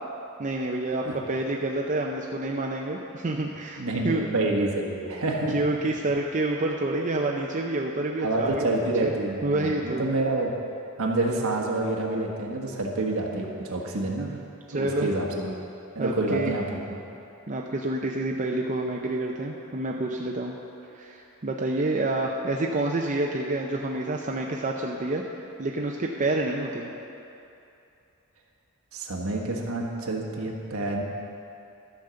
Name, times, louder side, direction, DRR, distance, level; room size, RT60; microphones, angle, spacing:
voice 1, 0.4-4.3 5.5-8.7 9.0-9.1 9.4-10.1 14.7-15.1 16.0-16.5 17.5-20.6 21.0-25.2 25.6-26.9, right 2 dB, 35° right, 0 dB, 0.6 m, -28 dB
voice 2, 3.8-5.5 8.2-10.5 11.0-14.3 14.7-15.5 15.9-17.0 28.9-31.0, right 2 dB, 65° right, 0 dB, 1.4 m, -28 dB
13.0 x 5.2 x 6.9 m, 2.8 s
head